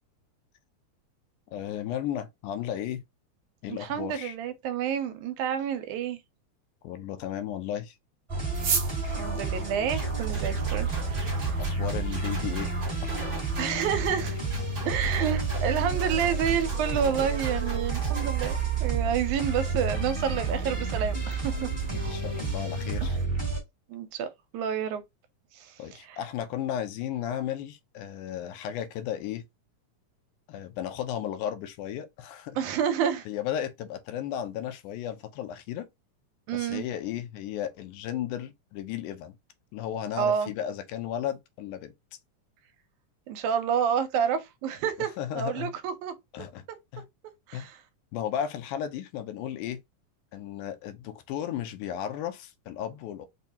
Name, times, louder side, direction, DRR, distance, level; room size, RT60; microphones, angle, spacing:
voice 1, 1.5-3.0 3.6-4.4 6.8-7.9 11.6-12.7 13.0-13.2 21.9-23.2 25.8-29.5 30.5-32.6 33.3-35.9 36.5-39.4 39.7-41.9 45.2-45.7 46.3-46.6 46.9-47.0 47.5-47.7 48.1-49.8 50.3-53.3, left 10 dB, 85° left, 2.1 m, -34 dB
voice 2, 3.7-6.2 9.2-11.6 13.6-14.4 14.9-21.7 23.9-24.3 24.5-25.0 25.5-26.2 32.6-33.3 36.5-36.9 40.2-40.5 43.3-46.1 47.5-47.8, right 8 dB, 85° right, 2.0 m, -29 dB
sound 1, 8.3-23.6, right 4 dB, 15° right, 1.0 m, -30 dB
sound 2, 8.5-23.2, right 6 dB, 55° right, 2.0 m, -41 dB
sound 3, 9.9-18.6, right 3 dB, 40° right, 1.1 m, -41 dB
5.3 x 2.2 x 2.7 m
omnidirectional pair, 3.5 m